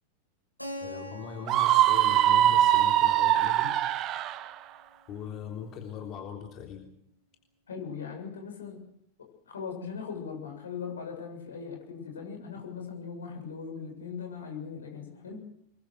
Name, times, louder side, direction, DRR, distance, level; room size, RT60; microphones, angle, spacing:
Keyboard (musical), 0.6-5.1, left 1 dB, 90° left, 3.2 m, -45 dB
voice 1, 0.8-3.8 5.1-6.9, left 6 dB, 35° left, 2 dB, 3.6 m, -40 dB
Screaming, 1.5-4.4, right 12 dB, 35° right, 1.1 m, -22 dB
voice 2, 7.7-8.8 9.2-15.5, left 6 dB, 70° left, 3 dB, 7.3 m, -39 dB
26.5 x 22.5 x 6.5 m, 0.72 s
figure-of-eight pair, 90°, 0 cm